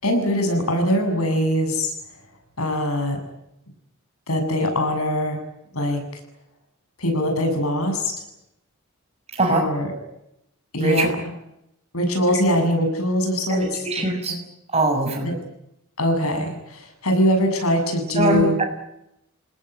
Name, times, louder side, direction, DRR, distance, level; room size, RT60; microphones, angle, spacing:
voice 1, 0.0-1.9 2.6-3.2 4.3-5.4 5.7-6.2 7.0-8.1 9.5-9.9 10.7-11.3 11.9-14.4 15.2-15.4 16.0-18.6, equal, 80° left, 5 dB, 7.5 m, -22 dB
voice 2, 13.8-14.3 14.7-15.3 18.2-18.7, right 2 dB, 30° right, 3 dB, 6.5 m, -21 dB
28.0 x 19.5 x 9.2 m, 0.82 s
head